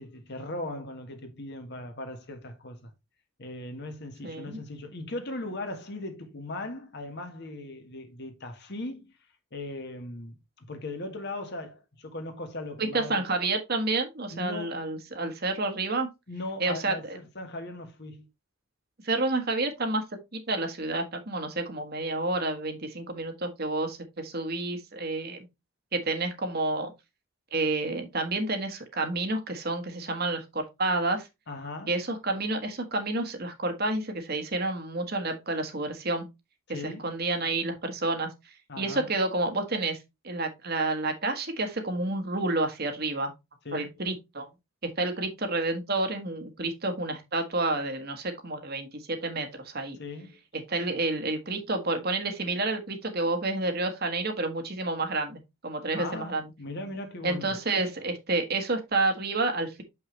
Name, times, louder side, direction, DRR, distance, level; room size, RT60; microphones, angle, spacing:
voice 1, 0.0-2.9 3.4-9.1 9.5-13.2 14.3-14.8 16.3-18.3 31.5-31.9 36.7-37.1 38.7-39.1 43.6-43.9 50.0-50.4 55.9-57.5, left 2 dB, 50° left, 1.4 m, -38 dB
voice 2, 4.2-4.6 12.8-16.1 16.6-17.2 19.0-25.5 25.9-26.9 27.5-31.3 31.9-36.2 36.7-40.0 40.2-43.3 43.7-44.5 44.8-50.0 50.5-56.5 57.2-59.8, right 2 dB, 45° right, 1.4 m, -30 dB
6.6 x 5.7 x 3.2 m
head